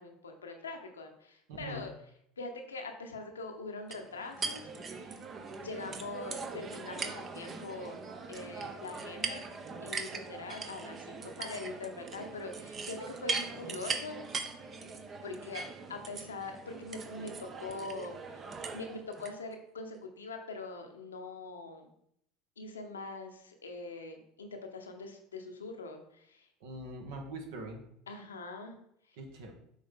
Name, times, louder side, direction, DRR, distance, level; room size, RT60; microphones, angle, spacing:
voice 1, 0.0-1.9 2.4-5.2 5.6-8.0 8.3-9.5 9.8-14.2 15.2-18.5 18.7-21.9 22.6-26.5 28.1-28.8 29.1-29.2, left 3 dB, 80° left, 5 dB, 0.8 m, -43 dB
voice 2, 1.5-1.8 26.6-27.8 29.2-29.5, right 1 dB, 65° right, 2 dB, 1.4 m, -42 dB
sound 1, 3.9-19.3, right 4 dB, 35° right, 0.8 m, -40 dB
6.4 x 4.2 x 3.8 m, 0.71 s
figure-of-eight pair, 70°, 0 cm